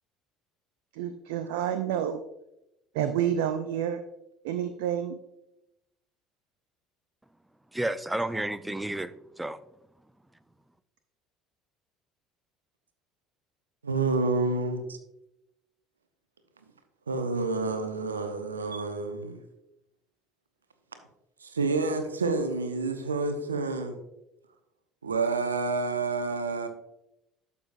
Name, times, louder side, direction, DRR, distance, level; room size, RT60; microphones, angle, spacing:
voice 1, 0.9-2.2 2.9-4.0 4.4-5.2, right 9 dB, 65° right, 0.4 m, -29 dB
voice 2, 7.7-9.6, right 1 dB, 10° right, 0.5 m, -31 dB
voice 3, 13.8-15.0 17.1-19.4 21.4-24.0 25.0-26.7, right 3 dB, 85° right, 0.8 m, -29 dB
11.5 x 7.0 x 2.5 m
figure-of-eight pair, 60°, 0 cm